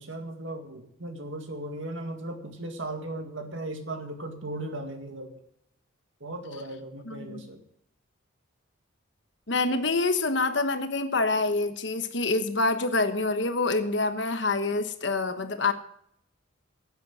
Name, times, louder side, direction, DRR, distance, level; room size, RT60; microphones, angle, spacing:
voice 1, 0.0-5.4 6.2-7.6, right 1 dB, 70° right, 5 dB, 2.0 m, -37 dB
voice 2, 7.1-7.4 9.5-15.7, left 3 dB, 60° left, 8 dB, 1.1 m, -26 dB
11.5 x 9.0 x 6.3 m, 0.71 s
head